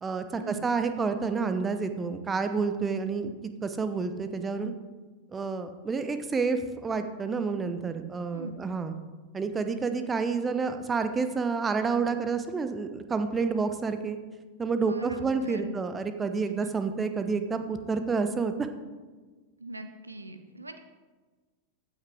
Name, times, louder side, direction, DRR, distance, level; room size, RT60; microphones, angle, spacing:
voice 1, 0.0-3.3 3.6-4.7 5.3-8.9 9.3-14.2 14.6-18.7, right 4 dB, 15° right, 9 dB, 0.7 m, -29 dB
voice 2, 14.7-15.7 19.6-20.8, right 2 dB, 80° right, 8 dB, 0.6 m, -40 dB
15.0 x 5.7 x 3.5 m, 1.3 s
figure-of-eight pair, 90°, 0 cm